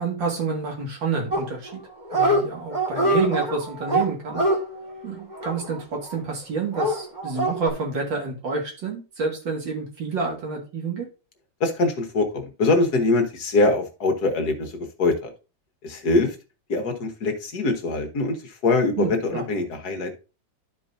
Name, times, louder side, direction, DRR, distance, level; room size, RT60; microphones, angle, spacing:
voice 1, 0.0-1.8 2.1-4.4 5.0-11.1 19.0-19.4, right 4 dB, 90° right, 0 dB, 2.7 m, -29 dB
Dog, 1.3-1.8 2.1-2.4 2.7-6.1 6.7-7.7, right 1 dB, 25° right, 1.7 m, -24 dB
voice 2, 11.6-15.3 15.8-16.3 16.7-20.1, left 3 dB, 60° left, 5 dB, 1.6 m, -23 dB
12.0 x 4.7 x 2.6 m, 0.32 s
omnidirectional pair, 2.0 m